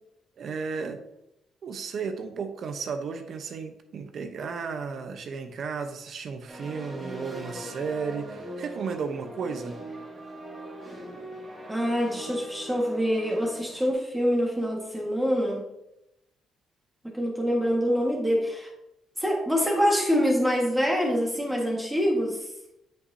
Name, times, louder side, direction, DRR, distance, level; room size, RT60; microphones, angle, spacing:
voice 1, 0.4-1.0 1.6-9.8, right 5 dB, 60° right, 7 dB, 0.9 m, -34 dB
sound 1, 6.5-13.9, right 1 dB, 35° right, 2.7 m, -41 dB
voice 2, 11.7-15.6 17.0-18.7 19.2-22.4, equal, 10° right, -2 dB, 1.7 m, -25 dB
8.0 x 7.0 x 2.8 m, 0.84 s
cardioid pair, 90°, 0 cm